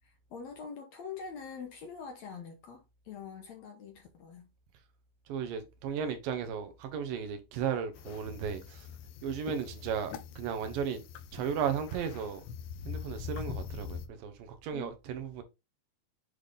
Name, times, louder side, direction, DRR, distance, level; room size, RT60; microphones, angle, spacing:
voice 1, 0.0-4.5 14.7-14.9, left 6 dB, 65° left, 1.8 m, -44 dB
voice 2, 5.3-8.9 9.2-11.0 11.3-12.4 12.9-15.4, right 7 dB, 75° right, 2.6 m, -35 dB
sound 1, 7.9-14.1, left 7 dB, 85° left, 2.4 m, -43 dB
8.2 x 3.4 x 3.8 m
omnidirectional pair, 4.1 m